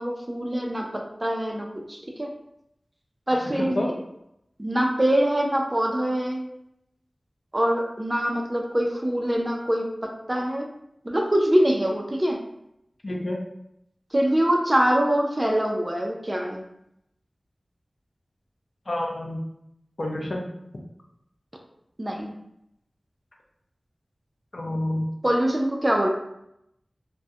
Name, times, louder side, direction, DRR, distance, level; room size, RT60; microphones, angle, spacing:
voice 1, 0.0-2.3 3.3-3.8 4.6-6.4 7.5-10.7 11.0-12.4 14.1-16.6 22.0-22.3 25.2-26.1, equal, 25° right, 1 dB, 0.4 m, -24 dB
voice 2, 3.6-3.9 13.0-13.4 18.9-19.4 20.0-20.5 20.7-20.8 24.5-25.1, left 1 dB, 55° left, 0 dB, 0.4 m, -28 dB
2.3 x 2.0 x 2.6 m, 0.80 s
wide cardioid pair, 65°, 0 cm